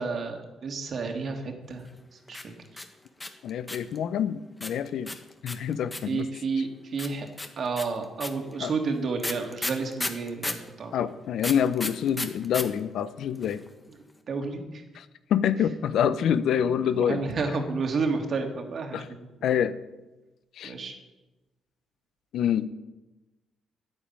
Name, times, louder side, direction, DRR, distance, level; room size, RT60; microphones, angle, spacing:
voice 1, 0.0-1.9 2.3-2.5 6.1-7.3 7.6-10.9 14.3-14.8 16.7-19.3 20.6-20.9, right 4 dB, 50° right, 4 dB, 2.7 m, -31 dB
sound 1, 2.3-4.0 4.6-6.2 7.0-10.7 11.4-12.6 12.9-13.0 13.2-13.7, left 2 dB, 15° left, 1.6 m, -33 dB
voice 2, 3.4-5.1 5.4-6.3 8.6-8.7 10.9-13.6 14.9-15.0 15.3-17.2 18.9-19.1 19.4-19.7 20.6-20.7 22.3-22.7, left 9 dB, 75° left, 13 dB, 0.8 m, -26 dB
10.5 x 10.0 x 9.0 m, 1.1 s
cardioid pair, 90°, 0 cm